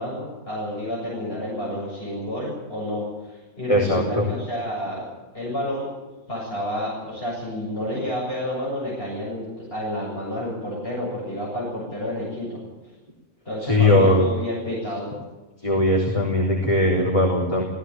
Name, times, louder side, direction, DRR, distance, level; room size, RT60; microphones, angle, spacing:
voice 1, 0.0-5.1 5.3-5.9 6.3-12.6 13.4-15.1, left 1 dB, 50° left, -6 dB, 8.0 m, -30 dB
voice 2, 3.7-4.2 13.6-14.3 15.6-17.6, left 1 dB, 25° left, -3 dB, 3.9 m, -19 dB
18.0 x 16.5 x 9.0 m, 1.2 s
omnidirectional pair, 1.4 m